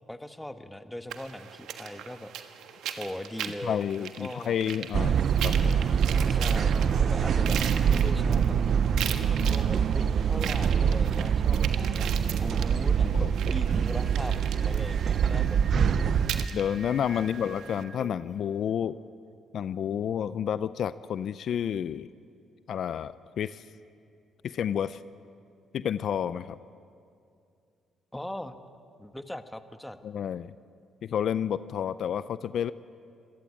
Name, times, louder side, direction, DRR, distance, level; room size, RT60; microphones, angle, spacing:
voice 1, 0.0-2.3 3.0-4.6 6.3-8.6 9.5-16.0 17.1-17.2 28.1-28.6 29.0-30.0, left 1 dB, 10° left, 9 dB, 1.3 m, -40 dB
sound 1, 1.1-17.8, right 9 dB, 80° right, 1.5 m, -40 dB
voice 2, 3.6-5.8 13.0-13.3 15.7-16.2 16.5-19.0 19.5-22.1 22.7-23.6 24.4-25.0 25.7-26.6 30.0-30.5 31.0-32.7, left 9 dB, 65° left, 15 dB, 0.5 m, -30 dB
sound 2, 4.9-16.5, right 7 dB, 60° right, 0.6 m, -25 dB
Singing, 13.7-18.4, right 4 dB, 35° right, 1.1 m, -47 dB
25.5 x 18.0 x 8.7 m, 2.4 s
cardioid pair, 90°, 0 cm